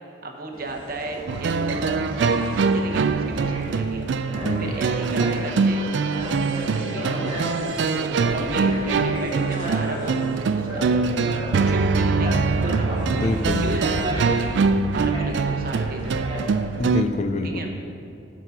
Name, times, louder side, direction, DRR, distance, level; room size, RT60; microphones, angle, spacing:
voice 1, 0.2-4.1 4.6-5.8 6.7-7.4 8.3-11.3 11.6-13.0 13.4-16.5 17.4-17.7, right 2 dB, 45° right, 2 dB, 0.9 m, -34 dB
sound 1, 0.5-16.8, equal, 25° right, 1.3 m, -34 dB
sound 2, 1.3-17.0, right 4 dB, 65° right, 0.3 m, -23 dB
voice 2, 4.4-4.8 12.0-12.1 13.1-13.9 16.8-17.8, left 2 dB, 35° left, 6 dB, 0.4 m, -27 dB
sound 3, 4.7-10.4, equal, 75° left, 1.3 m, -35 dB
11.0 x 4.1 x 5.9 m, 2.7 s
head